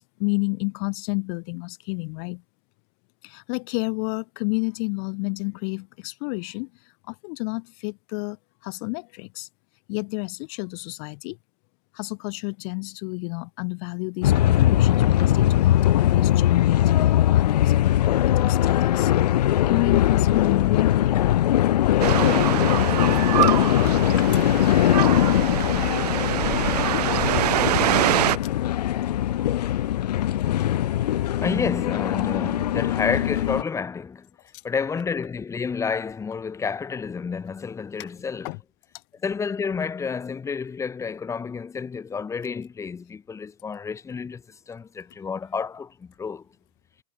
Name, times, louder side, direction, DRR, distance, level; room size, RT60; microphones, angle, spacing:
voice 1, 0.0-2.4 3.2-8.4 8.6-9.5 9.9-11.4 11.9-19.1 19.6-22.0 23.4-24.4 25.6-25.7 26.9-27.1 34.5-34.6 38.0-38.1 38.4-38.6 38.9-39.0, left 40 dB or more, 45° left, 3.8 m, -31 dB
sound 1, 14.2-33.6, left 12 dB, 80° left, 2.0 m, -21 dB
sound 2, 22.0-28.4, right 14 dB, 75° right, 1.1 m, -24 dB
voice 2, 31.4-34.3 34.6-38.5 39.2-46.4, left 5 dB, 15° left, 6.7 m, -30 dB
supercardioid pair, 145°, 20 cm